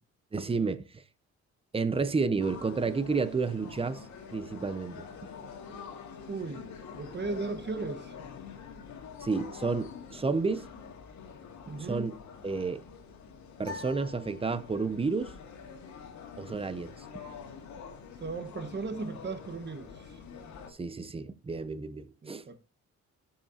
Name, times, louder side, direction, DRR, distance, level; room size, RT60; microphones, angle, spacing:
voice 1, 0.3-1.0 1.7-4.0 4.3-5.1 9.2-10.7 11.8-12.2 12.4-12.8 13.6-15.3 16.4-17.0 20.7-22.5, right 4 dB, 20° right, 0.7 m, -31 dB
sound 1, 2.4-20.7, left 6 dB, 70° left, 2.0 m, -46 dB
voice 2, 6.3-6.7 7.0-8.1 11.7-12.1 18.2-20.2 22.2-22.5, right 3 dB, 35° right, 1.4 m, -36 dB
sound 2, 13.6-15.1, left 4 dB, 15° left, 3.7 m, -45 dB
13.5 x 5.7 x 2.8 m
cardioid pair, 90°, 30 cm